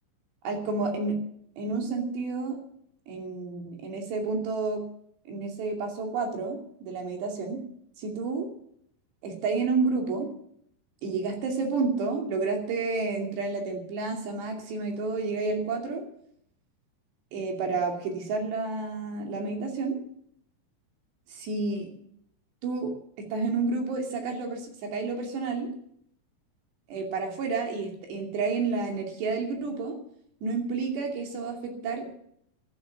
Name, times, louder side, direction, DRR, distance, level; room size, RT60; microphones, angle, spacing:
voice 1, 0.5-1.2 1.6-2.6 3.1-4.8 5.3-7.6 8.0-8.5 9.2-10.3 11.0-16.0 17.3-20.0 21.3-21.9 22.6-22.9 23.3-25.7 26.9-30.0 30.4-32.1, right 4 dB, 60° right, 2 dB, 4.4 m, -30 dB
12.5 x 12.5 x 7.5 m, 0.68 s
omnidirectional pair, 6.0 m